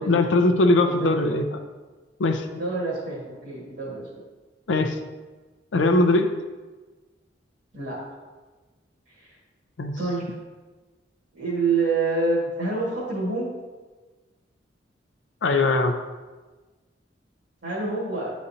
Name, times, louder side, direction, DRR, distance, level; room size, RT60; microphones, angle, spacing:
voice 1, 0.0-1.4 2.2-2.5 4.7-5.0 5.7-6.3 9.8-10.0 15.4-16.0, left 2 dB, 85° left, 6 dB, 0.5 m, -20 dB
voice 2, 0.8-1.4 2.5-4.1 7.7-8.1 9.1-9.3 10.0-10.2 11.3-13.5 17.6-18.3, right 3 dB, 65° right, -7 dB, 1.7 m, -27 dB
9.7 x 4.1 x 2.7 m, 1.3 s
head